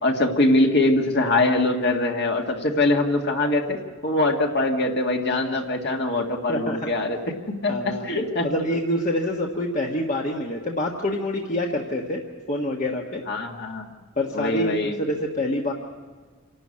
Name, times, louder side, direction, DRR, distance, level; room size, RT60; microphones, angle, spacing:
voice 1, 0.0-3.8 4.0-7.2 7.6-8.5 13.3-13.9 14.3-15.0, left 2 dB, 55° left, 2 dB, 1.9 m, -22 dB
voice 2, 6.5-6.8 7.7-8.2 8.4-13.2 14.2-15.7, left 1 dB, 35° left, 0 dB, 1.4 m, -26 dB
28.0 x 12.0 x 8.6 m, 1.5 s
head